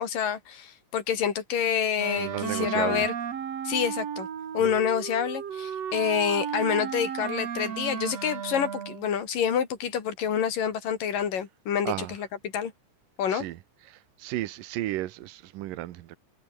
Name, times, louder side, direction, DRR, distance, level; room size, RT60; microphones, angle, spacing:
voice 1, 0.0-3.1 3.6-4.3 4.5-12.7 13.2-13.5, left 8 dB, 85° left, 4.5 m, -27 dB
Wind instrument woodwind instrument, 2.0-9.1, right 8 dB, 55° right, 3.0 m, -34 dB
voice 2, 2.2-3.1 4.6-4.7 11.9-12.1 13.3-13.6 13.9-16.2, right 15 dB, 85° right, 2.7 m, -33 dB
omnidirectional pair, 3.8 m